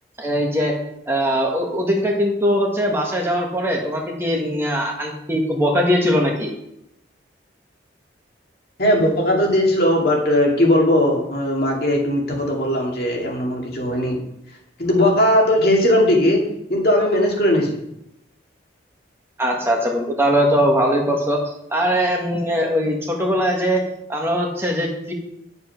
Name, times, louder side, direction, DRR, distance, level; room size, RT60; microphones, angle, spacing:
voice 1, 0.2-0.7 1.1-6.5 19.4-23.8 24.1-25.1, equal, 15° right, 0 dB, 1.6 m, -21 dB
voice 2, 8.8-14.2 14.8-16.4 16.7-17.8, left 1 dB, 55° left, -1 dB, 2.6 m, -18 dB
10.0 x 6.9 x 5.9 m, 0.80 s
head